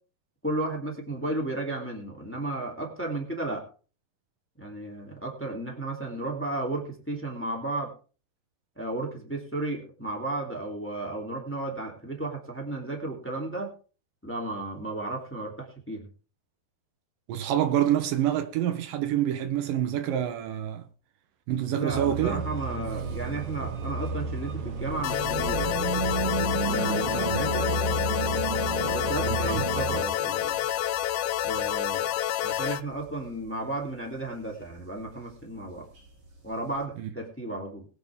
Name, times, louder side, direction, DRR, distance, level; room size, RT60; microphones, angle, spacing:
voice 1, 0.4-3.7 4.6-7.9 8.8-13.7 14.2-16.1 21.7-25.8 26.6-27.7 28.8-30.6 31.4-32.1 32.4-35.8 36.4-37.9, right 2 dB, 5° left, 2.4 m, -33 dB
voice 2, 17.3-20.8 21.5-22.5 27.1-27.4 29.2-29.6 37.0-37.1, right 11 dB, 75° right, 2.6 m, -27 dB
sound 1, 21.9-30.0, right 4 dB, 55° right, 1.8 m, -31 dB
sound 2, 25.0-32.8, left 12 dB, 90° left, 1.5 m, -28 dB
sound 3, 30.2-36.9, right 2 dB, 35° right, 4.2 m, -53 dB
21.0 x 8.9 x 3.6 m
omnidirectional pair, 4.1 m